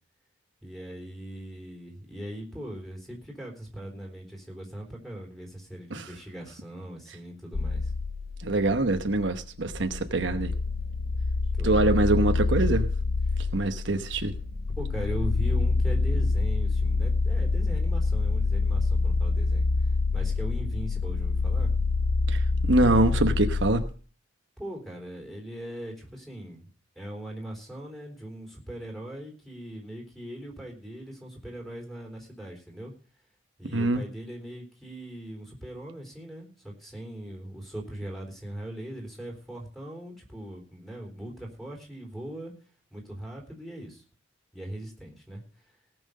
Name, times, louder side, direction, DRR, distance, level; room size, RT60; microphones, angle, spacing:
voice 1, 0.6-7.9 11.6-11.9 13.3-13.5 14.8-21.8 24.6-26.7 27.0-32.9 33.6-42.5 42.9-44.0 44.5-45.8, right 1 dB, ahead, 3.8 m, -40 dB
sound 1, 7.5-23.8, left 3 dB, 85° left, 0.8 m, -26 dB
voice 2, 8.4-10.5 11.6-12.9 13.5-14.3 22.3-23.8 33.7-34.0, right 2 dB, 70° right, 1.0 m, -24 dB
18.0 x 6.1 x 6.6 m
head